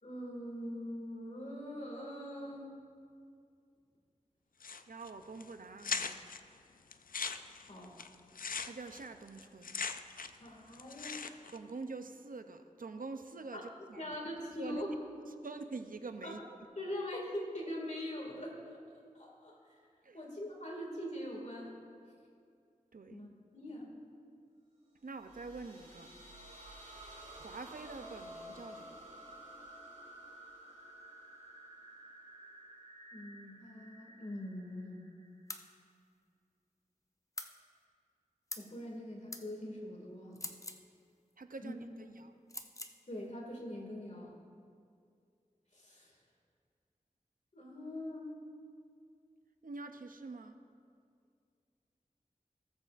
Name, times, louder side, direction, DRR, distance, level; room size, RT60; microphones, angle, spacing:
voice 1, 0.0-2.7 7.7-7.9 10.4-11.3 13.5-13.6 14.0-14.9 16.2-16.3 16.8-18.8 19.1-19.8 20.1-21.7 23.1-23.9 33.1-35.0 38.6-40.4 41.6-41.7 43.1-44.3 45.7-46.2 47.5-48.4, left 1 dB, 55° left, -2 dB, 2.2 m, -42 dB
sound 1, 4.6-5.1 5.4-5.5 5.8-6.4 6.9-10.5 10.7-11.6, left 5 dB, 75° left, 0.4 m, -39 dB
voice 2, 4.9-6.2 8.6-9.8 11.5-14.2 14.6-14.9 15.4-16.4 20.0-20.2 22.9-23.2 25.0-26.1 27.4-29.1 41.4-42.3 49.6-50.6, right 3 dB, 75° right, 8 dB, 0.6 m, -46 dB
sound 2, 25.1-35.7, right 1 dB, 55° right, 2.3 m, -52 dB
sound 3, 35.5-35.7 37.4-37.5 38.5-38.7 39.3-39.5 40.3-40.8 42.5-43.0, left 2 dB, 20° left, 0.6 m, -43 dB
18.5 x 7.6 x 2.5 m, 2.3 s
wide cardioid pair, 55°, 14 cm